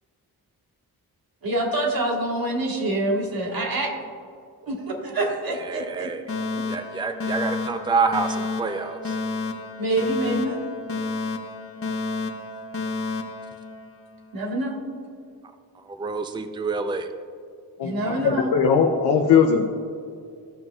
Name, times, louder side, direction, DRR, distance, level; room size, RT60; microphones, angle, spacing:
voice 1, 1.4-3.9 4.7-6.1 6.5-6.6 9.8-10.6 14.3-14.8 17.8-18.6, right 1 dB, 65° right, 0 dB, 1.7 m, -26 dB
voice 2, 5.6-6.2 6.7-9.1 15.9-17.1, right 4 dB, 10° right, 7 dB, 0.5 m, -27 dB
Alarm, 6.3-14.3, left 3 dB, 35° left, 0.9 m, -31 dB
voice 3, 17.8-19.6, left 6 dB, 90° left, 2 dB, 0.7 m, -19 dB
14.5 x 6.0 x 2.4 m, 2.3 s
cardioid pair, 55°, 38 cm